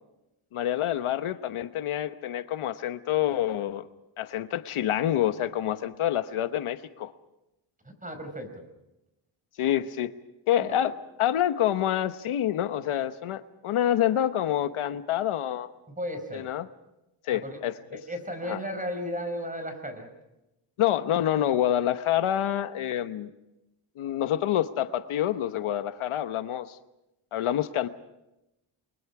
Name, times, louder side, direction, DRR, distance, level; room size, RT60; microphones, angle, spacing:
voice 1, 0.5-3.8 4.2-7.1 9.6-10.1 10.5-15.7 16.3-16.7 17.2-17.7 18.4-18.6 20.8-23.3 24.0-26.8 27.3-27.9, left 11 dB, 85° left, 11 dB, 1.1 m, -27 dB
voice 2, 7.9-8.6 16.0-16.5 17.3-17.6 17.9-20.1, equal, 15° right, 7 dB, 5.3 m, -35 dB
29.0 x 23.0 x 4.8 m, 0.90 s
cardioid pair, 115°, 49 cm